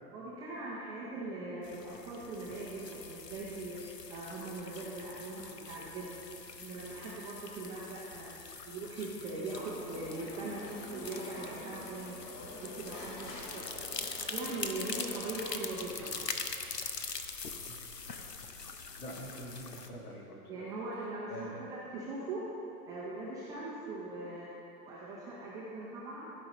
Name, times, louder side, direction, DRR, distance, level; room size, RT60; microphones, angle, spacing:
voice 1, 0.1-6.2 6.6-8.3 8.7-12.2 12.6-13.6 14.3-16.3 20.5-22.5 22.9-26.3, right 2 dB, 10° right, -7 dB, 0.3 m, -41 dB
sound 1, 1.6-19.9, left 5 dB, 85° left, 0.7 m, -43 dB
sound 2, 9.8-15.3, left 1 dB, 45° left, 1.8 m, -48 dB
voice 2, 19.0-20.6 21.3-21.6, equal, 65° left, -1 dB, 1.8 m, -45 dB
14.0 x 5.5 x 3.9 m, 2.9 s
figure-of-eight pair, 95°, 47 cm